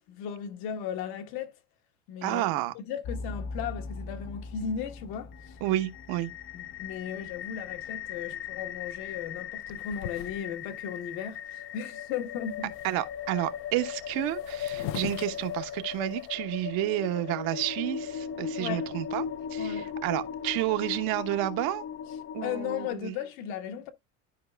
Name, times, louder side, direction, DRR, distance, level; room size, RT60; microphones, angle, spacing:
voice 1, 0.0-1.5 2.1-2.5 2.7-5.6 6.5-12.7 18.6-18.9 19.6-19.9 22.4-23.9, left 8 dB, 65° left, 1.4 m, -36 dB
voice 2, 2.2-2.7 5.6-6.3 12.8-19.2 19.5-21.8 22.3-23.1, right 15 dB, 60° right, 1.1 m, -30 dB
sound 1, 3.0-22.9, left 7 dB, 30° left, 0.5 m, -38 dB
sound 2, 9.7-10.8 11.3-11.4 11.6-12.1 12.4-13.1 14.0-14.1 14.2-16.3, left 12 dB, 85° left, 0.6 m, -41 dB
12.5 x 4.7 x 2.3 m
supercardioid pair, 100°, 40 cm